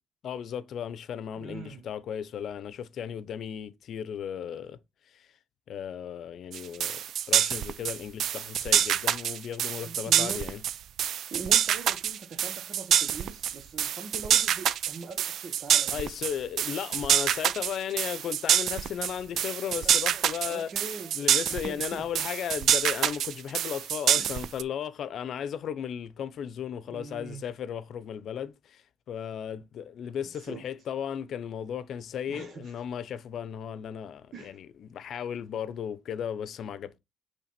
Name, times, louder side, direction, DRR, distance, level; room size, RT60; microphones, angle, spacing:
voice 1, 0.2-4.8 5.1-5.3 5.7-10.6 15.9-20.7 21.1-37.0, left 8 dB, 65° left, 0.7 m, -35 dB
voice 2, 1.4-1.8 9.8-10.4 11.3-16.0 20.0-21.1 21.5-22.1 24.1-24.4 26.9-27.4 30.3-30.7 32.3-32.8 34.3-34.6, right 4 dB, 55° right, 1.2 m, -42 dB
sound 1, 6.5-24.6, right 10 dB, 70° right, 0.5 m, -26 dB
9.1 x 3.5 x 4.3 m
cardioid pair, 90°, 0 cm